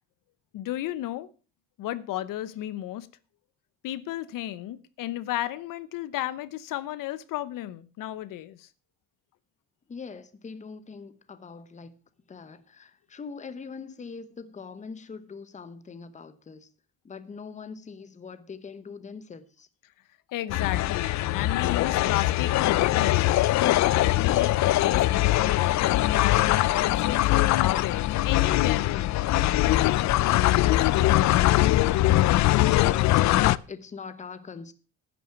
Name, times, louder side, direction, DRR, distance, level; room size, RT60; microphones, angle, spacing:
voice 1, 0.5-1.3 1.8-3.1 3.8-8.7 20.3-25.1 25.3-31.7, left 14 dB, 75° left, 0.9 m, -34 dB
voice 2, 9.9-12.0 12.3-16.7 17.0-19.7 32.8-34.7, left 5 dB, 20° left, 1.0 m, -42 dB
sound 1, 20.5-33.6, left 15 dB, 60° left, 0.5 m, -22 dB
10.5 x 9.2 x 5.8 m
cardioid pair, 145°, 33 cm